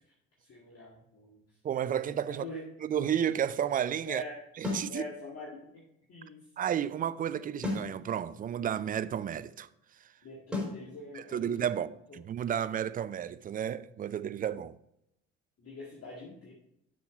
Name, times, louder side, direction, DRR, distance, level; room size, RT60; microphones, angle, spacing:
voice 1, 0.4-1.4 2.3-2.6 4.0-4.4 4.9-5.8 6.1-6.4 10.2-11.5 12.1-12.2 15.6-16.5, left 2 dB, 40° left, 1.9 m, -44 dB
voice 2, 1.6-2.4 2.8-4.2 4.6-5.0 6.6-9.7 11.1-14.8, right 9 dB, 25° right, 0.4 m, -32 dB
sound 1, 4.6-4.9 7.6-7.9 10.5-10.8, left 3 dB, ahead, 3.4 m, -33 dB
7.0 x 6.3 x 4.3 m
figure-of-eight pair, 50°, 36 cm